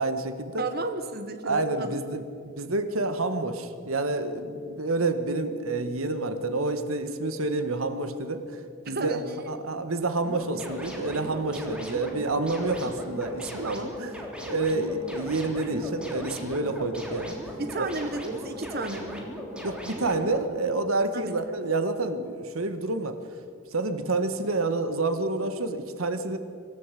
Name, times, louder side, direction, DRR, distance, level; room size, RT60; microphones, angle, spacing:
voice 1, 0.0-0.6 1.4-2.2 2.6-17.4 17.8-17.9 19.6-23.2 23.7-26.4, right 2 dB, 90° right, 9 dB, 1.7 m, -28 dB
voice 2, 0.6-2.0 8.8-9.4 17.6-19.2 21.1-21.3, right 2 dB, 50° right, 8 dB, 1.4 m, -33 dB
sound 1, 10.2-20.4, equal, 5° right, 3.4 m, -38 dB
25.0 x 15.5 x 8.4 m, 2.2 s
head